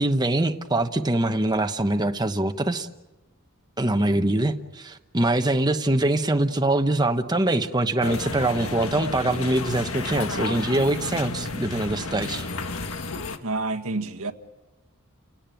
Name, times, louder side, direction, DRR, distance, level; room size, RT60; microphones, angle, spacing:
voice 1, 0.0-2.9 3.8-12.5, right 1 dB, 20° right, 1.0 m, -23 dB
sound 1, 8.0-13.4, left 3 dB, 75° left, 1.7 m, -32 dB
voice 2, 13.4-14.3, right 3 dB, 85° right, 1.6 m, -28 dB
30.0 x 17.5 x 9.1 m
head